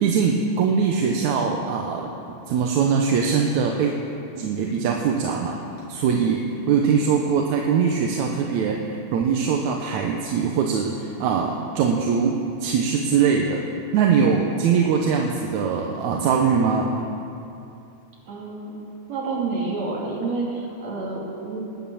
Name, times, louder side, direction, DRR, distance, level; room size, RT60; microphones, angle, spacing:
voice 1, 0.0-3.9 4.3-5.6 5.9-13.6 13.9-17.1, right 6 dB, 80° right, 1 dB, 2.3 m, -22 dB
voice 2, 18.3-18.7 19.1-21.6, right 3 dB, 60° right, -4 dB, 4.0 m, -29 dB
19.5 x 9.6 x 7.1 m, 2.7 s
omnidirectional pair, 3.4 m